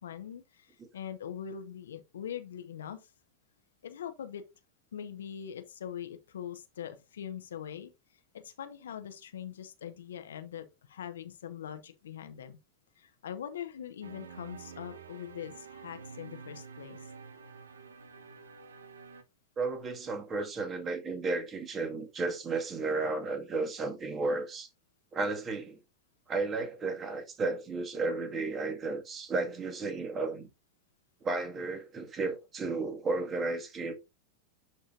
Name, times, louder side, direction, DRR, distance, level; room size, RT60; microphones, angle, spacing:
voice 1, 0.0-3.0 3.8-4.4 4.9-7.9 8.3-12.6 13.0-17.1, left 9 dB, 70° left, 1.0 m, -42 dB
sound 1, 14.0-19.2, right 5 dB, 75° right, 0.9 m, -49 dB
voice 2, 19.6-24.7 25.1-25.8 26.3-30.5 31.2-33.9, right 3 dB, 25° right, 1.8 m, -33 dB
11.5 x 4.4 x 2.5 m
figure-of-eight pair, 90°, 0 cm